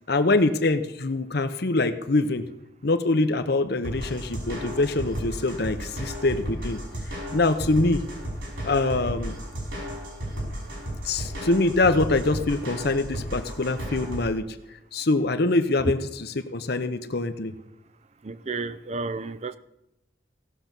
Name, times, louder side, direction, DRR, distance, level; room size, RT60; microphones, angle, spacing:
voice 1, 0.1-2.5 2.8-6.8 7.1-8.0 8.7-9.4 11.0-14.5 14.9-17.5, left 2 dB, 55° left, 0.8 m, -24 dB
sound 1, 3.8-14.2, equal, 80° right, 5.5 m, -34 dB
voice 2, 18.2-19.6, right 3 dB, 35° right, 0.5 m, -32 dB
17.0 x 6.8 x 6.0 m
head